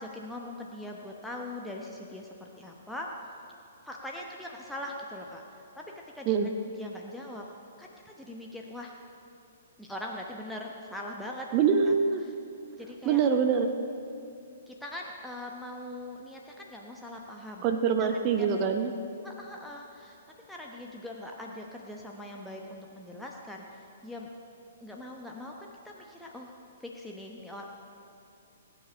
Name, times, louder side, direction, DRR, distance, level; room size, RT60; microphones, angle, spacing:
voice 1, 0.0-3.1 3.8-5.4 5.8-5.9 6.1-6.3 6.8-7.5 7.8-8.9 9.8-11.5 11.8-12.0 12.2-12.3 12.8-13.2 14.7-17.7 18.0-18.5 19.2-20.2 20.5-24.3 24.8-26.5 26.8-27.6, left 1 dB, ahead, -1 dB, 1.0 m, -41 dB
voice 2, 11.5-12.2 13.0-13.7 17.6-18.9, right 6 dB, 30° right, 5 dB, 0.8 m, -24 dB
20.5 x 9.0 x 5.5 m, 2.7 s
figure-of-eight pair, 120°, 0 cm